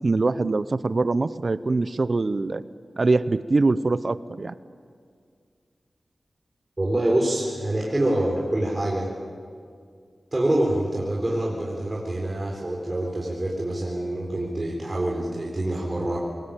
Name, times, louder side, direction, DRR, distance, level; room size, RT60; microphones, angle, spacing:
voice 1, 0.0-2.6 3.0-4.6, right 3 dB, 55° right, 15 dB, 0.7 m, -23 dB
voice 2, 6.8-9.1 10.3-16.2, right 1 dB, 30° right, -3 dB, 4.2 m, -26 dB
23.5 x 20.5 x 9.0 m, 2.1 s
wide cardioid pair, 60°, 0 cm